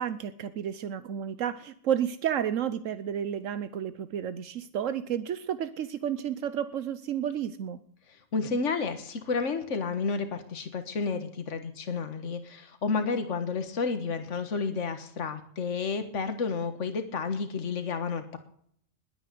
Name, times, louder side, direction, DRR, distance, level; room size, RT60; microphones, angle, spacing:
voice 1, 0.0-7.8, right 9 dB, 85° right, 13 dB, 1.2 m, -31 dB
voice 2, 8.1-18.4, left 4 dB, 70° left, 8 dB, 1.8 m, -31 dB
21.0 x 9.0 x 6.8 m, 0.64 s
omnidirectional pair, 1.3 m